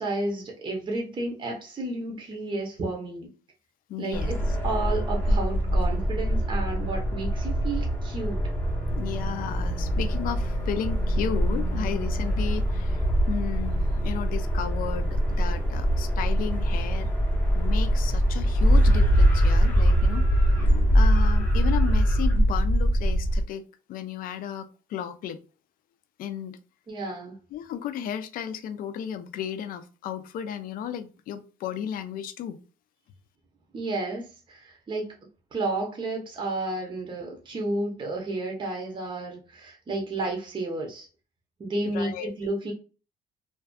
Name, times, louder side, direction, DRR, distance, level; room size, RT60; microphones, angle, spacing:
voice 1, 0.0-3.3 4.0-4.4 4.6-8.4 26.9-27.4 33.7-35.2 35.5-41.1 41.6-42.7, right 2 dB, 30° right, 0 dB, 0.7 m, -31 dB
voice 2, 3.9-4.3 8.9-17.1 17.5-23.6 23.9-25.4 26.2-26.6 27.5-32.6 41.9-42.3, left 9 dB, 55° left, 10 dB, 0.4 m, -34 dB
sound 1, 4.1-23.4, equal, 10° left, 0.7 m, -23 dB
2.5 x 2.3 x 2.2 m, 0.35 s
cardioid pair, 110°, 17 cm